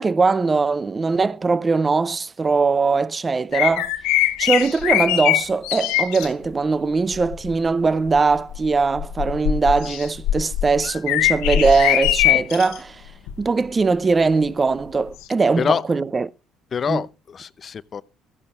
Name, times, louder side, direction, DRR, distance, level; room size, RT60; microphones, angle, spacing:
voice 1, 0.0-3.9 4.4-13.0 13.4-16.3 16.9-17.0, right 4 dB, 30° right, 0.7 m, -20 dB
sound 1, 3.5-6.3 7.1-7.5 8.1-12.8 13.3-13.4 15.2-15.3, left 14 dB, 80° left, 1.0 m, -21 dB
voice 2, 15.6-15.9 16.7-18.0, left 6 dB, 40° left, 0.6 m, -25 dB
14.0 x 11.0 x 2.5 m
supercardioid pair, 70°, 0 cm